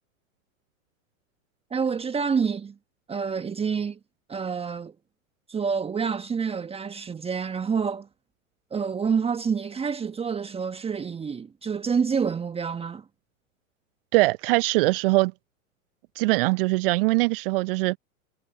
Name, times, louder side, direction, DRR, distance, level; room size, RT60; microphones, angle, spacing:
voice 1, 1.7-2.7 3.1-4.0 4.3-4.9 5.5-8.1 8.7-13.0, right 6 dB, 15° right, 1.4 m, -27 dB
voice 2, 14.1-15.3 16.2-18.0, right 24 dB, 45° right, 0.7 m, -22 dB
hypercardioid pair, 100°, 41 cm